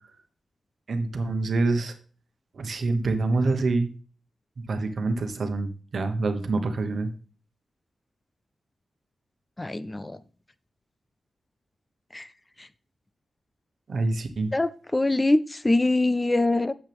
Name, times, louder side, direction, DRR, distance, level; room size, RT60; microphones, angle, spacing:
voice 1, 0.9-1.9 2.5-3.9 4.7-7.1 13.9-14.5, right 3 dB, 55° right, 1.2 m, -26 dB
voice 2, 9.6-10.2 12.1-12.3 14.5-16.7, left 2 dB, 15° left, 0.3 m, -23 dB
8.8 x 7.6 x 3.5 m
wide cardioid pair, 145°, 0 cm